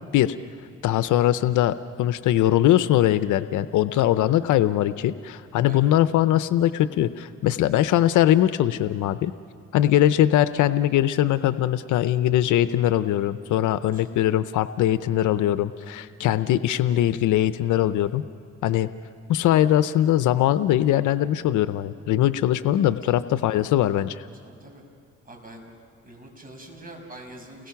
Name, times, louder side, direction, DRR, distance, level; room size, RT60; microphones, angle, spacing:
voice 1, 0.8-9.3 9.7-18.2 18.6-18.9 19.3-24.2, left 12 dB, 80° left, 13 dB, 0.7 m, -21 dB
voice 2, 22.7-23.1 24.4-24.8 25.2-25.7 26.0-27.7, right 1 dB, 30° right, 2 dB, 5.7 m, -45 dB
30.0 x 21.5 x 5.8 m, 2.5 s
cardioid pair, 90°, 30 cm